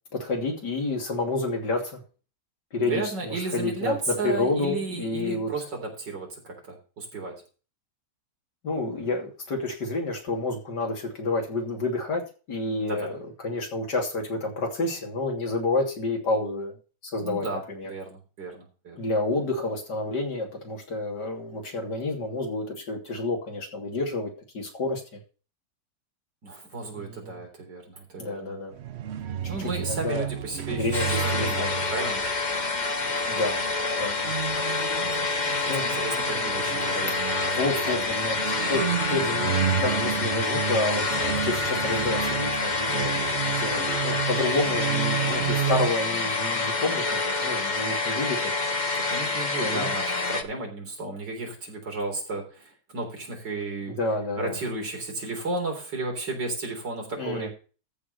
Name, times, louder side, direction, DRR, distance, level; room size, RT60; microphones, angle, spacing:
voice 1, 0.1-2.0 2.7-5.5 8.6-12.2 12.5-16.8 17.0-17.9 19.0-25.2 26.9-27.3 28.2-28.8 29.6-30.3 30.7-31.8 33.3-33.6 34.0-34.3 35.7-35.9 37.5-38.8 39.1-48.5 49.6-49.9 53.9-54.6 57.2-57.5, left 2 dB, 70° left, 1 dB, 3.5 m, -29 dB
voice 2, 2.8-7.3 12.8-13.1 17.2-19.0 26.4-28.5 29.5-32.3 35.0-37.5 37.9-38.2 48.9-53.9 54.4-57.5, right 3 dB, 90° right, 1 dB, 4.4 m, -34 dB
sound 1, 28.7-45.9, right 10 dB, 70° right, 0.6 m, -32 dB
sound 2, 30.9-50.4, left 3 dB, 30° left, 0.9 m, -27 dB
14.0 x 5.0 x 6.6 m, 0.36 s
omnidirectional pair, 1.9 m